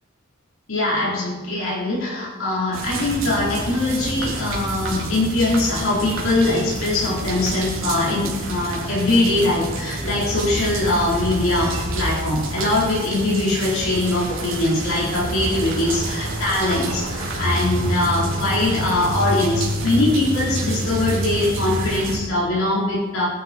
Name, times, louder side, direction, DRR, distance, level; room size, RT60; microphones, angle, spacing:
voice 1, 0.7-23.3, left 2 dB, 85° left, -6 dB, 4.5 m, -22 dB
sound 1, 2.7-22.2, right 1 dB, 70° right, 3.5 m, -28 dB
20.0 x 12.0 x 4.6 m, 1.4 s
head